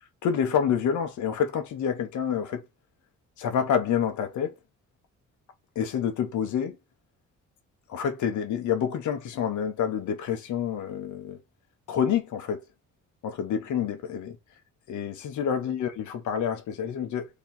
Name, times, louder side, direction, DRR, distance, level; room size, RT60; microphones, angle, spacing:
voice 1, 0.2-2.6 3.4-4.5 5.7-6.8 7.9-11.4 11.9-12.6 13.2-14.4 14.9-17.3, left 8 dB, 75° left, 1.1 m, -28 dB
3.4 x 3.0 x 4.3 m
cardioid pair, 90°, 30 cm